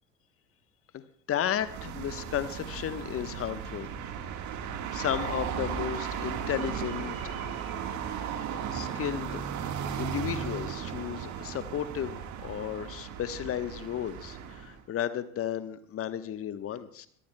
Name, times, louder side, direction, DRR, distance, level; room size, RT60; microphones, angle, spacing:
voice 1, 1.3-3.9 4.3-4.5 4.9-7.3 8.5-9.5 10.0-17.1, left 10 dB, 35° left, 12 dB, 1.1 m, -34 dB
sound 1, 1.5-14.8, right 8 dB, 45° right, 1.7 m, -36 dB
sound 2, 4.9-10.6, right 2 dB, 80° right, 5.1 m, -56 dB
23.5 x 18.5 x 2.2 m, 0.62 s
figure-of-eight pair, 70°, 42 cm